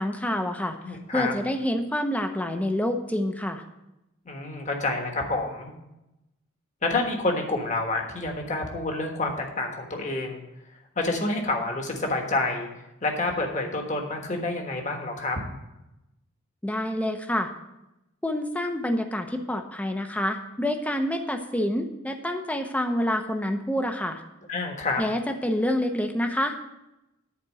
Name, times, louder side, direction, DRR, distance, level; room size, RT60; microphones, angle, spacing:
voice 1, 0.0-3.6 16.6-17.5 18.2-24.2 25.0-26.6, left 1 dB, 5° left, 5 dB, 0.8 m, -27 dB
voice 2, 0.8-1.3 4.2-5.7 6.8-10.4 10.9-12.7 13.0-15.4 24.5-25.0, left 2 dB, 35° left, 2 dB, 1.4 m, -28 dB
10.5 x 4.4 x 7.6 m, 0.92 s
head